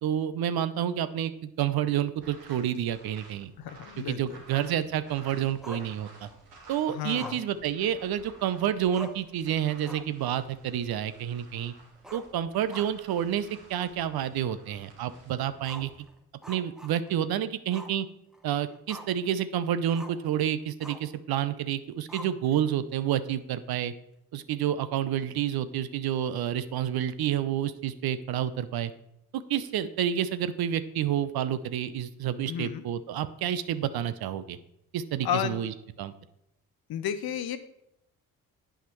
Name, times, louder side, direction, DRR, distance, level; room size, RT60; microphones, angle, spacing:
voice 1, 0.0-3.5 4.0-6.3 6.7-11.7 12.1-15.9 16.5-18.1 18.4-23.9 24.3-28.9 29.3-34.6 34.9-36.1, right 10 dB, 55° right, 13 dB, 0.6 m, -29 dB
sound 1, 2.1-7.2 7.5-16.0, right 2 dB, 80° right, 1.7 m, -54 dB
voice 2, 3.6-4.4 6.9-7.4 32.5-32.8 35.2-35.6 36.9-37.6, left 9 dB, 55° left, 11 dB, 0.7 m, -32 dB
Growling, 5.6-6.4 7.1-8.4 8.7-8.8 8.9-9.3 9.7-10.2 10.5-10.6 12.0-13.2 13.5-13.6 14.2-14.3 15.6-17.2 17.7-18.0 18.3-19.3 19.9-20.2 20.8-21.2 22.1-22.7, equal, ahead, 0.8 m, -45 dB
8.5 x 5.6 x 3.0 m, 0.80 s
hypercardioid pair, 40°, 44 cm